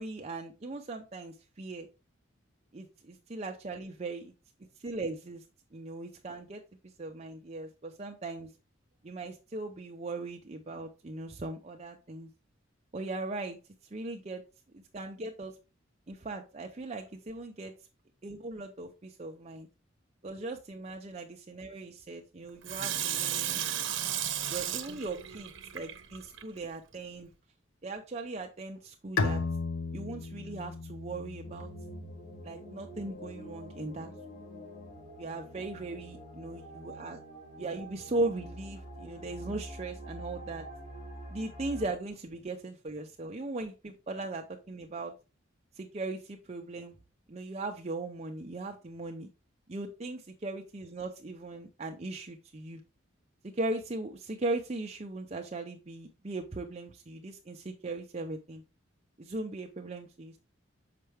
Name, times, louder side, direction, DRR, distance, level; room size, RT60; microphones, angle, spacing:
voice 1, 0.0-1.9 2.7-4.3 4.8-5.4 5.7-8.5 9.0-12.3 12.9-13.6 13.9-14.4 14.7-15.6 16.1-17.7 18.2-19.7 20.2-23.6 24.5-27.3 27.8-29.4 29.9-31.7 32.4-34.1 35.2-37.2 37.6-40.7 41.3-45.1 45.7-47.0 47.3-49.3 49.7-52.8 53.4-58.6 59.2-60.4, right 2 dB, 35° right, 2 dB, 0.6 m, -38 dB
Water tap faucet / Sink (filling or washing), 22.6-26.4 26.9-27.0, right 10 dB, 70° right, 1.0 m, -34 dB
Bowed string instrument, 29.2-32.6, left 4 dB, 70° left, 0.6 m, -35 dB
sound 1, 31.4-41.9, right 1 dB, 40° left, 2.6 m, -46 dB
6.7 x 5.5 x 3.4 m, 0.32 s
head